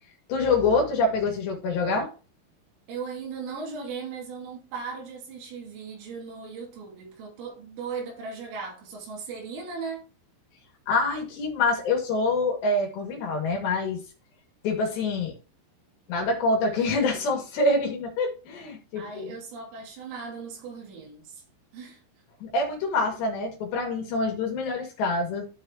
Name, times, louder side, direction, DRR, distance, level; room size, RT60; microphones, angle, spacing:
voice 1, 0.3-2.1 10.9-14.0 14.6-15.3 16.1-19.4 22.4-25.4, left 3 dB, 60° left, 3.9 m, -26 dB
voice 2, 2.9-10.0 19.0-21.4 21.7-22.0, right 5 dB, 80° right, 5.2 m, -37 dB
13.5 x 4.8 x 2.9 m
omnidirectional pair, 5.9 m